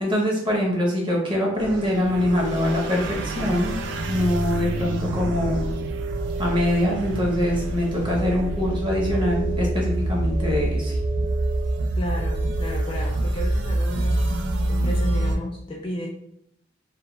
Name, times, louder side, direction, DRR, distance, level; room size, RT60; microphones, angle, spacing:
voice 1, 0.0-3.8 4.1-5.7 6.4-11.0, left 1 dB, 25° right, -3 dB, 0.7 m, -24 dB
sound 1, 1.6-15.4, right 1 dB, 60° right, 0.3 m, -26 dB
voice 2, 12.0-14.4 14.7-16.1, left 1 dB, 25° left, 0 dB, 0.3 m, -33 dB
2.1 x 2.1 x 3.0 m, 0.70 s
head